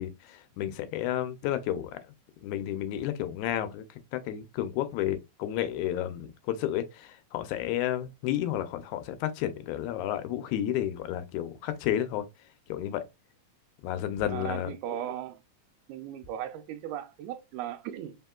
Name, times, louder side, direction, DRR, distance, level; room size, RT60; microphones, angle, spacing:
voice 1, 0.0-2.0 2.4-3.8 4.1-12.3 12.7-13.0 13.8-14.7, left 11 dB, 80° left, 1.9 m, -31 dB
voice 2, 14.3-15.4 15.9-18.2, right 11 dB, 85° right, 2.0 m, -37 dB
4.1 x 3.5 x 2.2 m
omnidirectional pair, 3.4 m